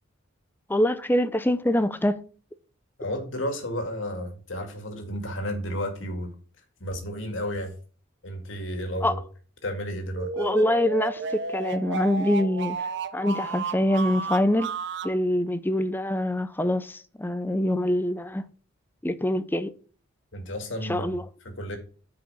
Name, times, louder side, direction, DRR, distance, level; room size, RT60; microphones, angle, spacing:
voice 1, 0.7-2.2 9.0-9.2 10.4-14.7 15.0-18.4 19.0-19.7 20.9-21.3, left 1 dB, 10° left, 0.5 m, -25 dB
voice 2, 3.0-6.3 6.8-7.7 8.2-9.2 9.6-10.3 20.3-21.2 21.4-21.8, equal, 70° left, 2.1 m, -32 dB
sound 1, 10.2-15.2, right 4 dB, 60° right, 0.7 m, -33 dB
9.6 x 4.9 x 5.5 m
head